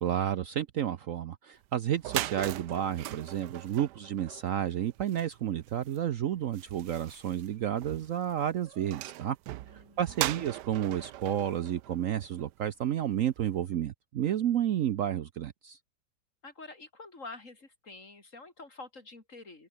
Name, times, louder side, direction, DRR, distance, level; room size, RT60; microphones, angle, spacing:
voice 1, 0.0-9.4 10.0-15.8, right 10 dB, 60° right, 1.0 m, -31 dB
sound 1, 1.6-1.7 1.9-12.7, right 15 dB, 85° right, 1.2 m, -40 dB
voice 2, 9.7-10.5 16.4-19.7, left 3 dB, 50° left, 3.9 m, -48 dB
open air
omnidirectional pair, 1.8 m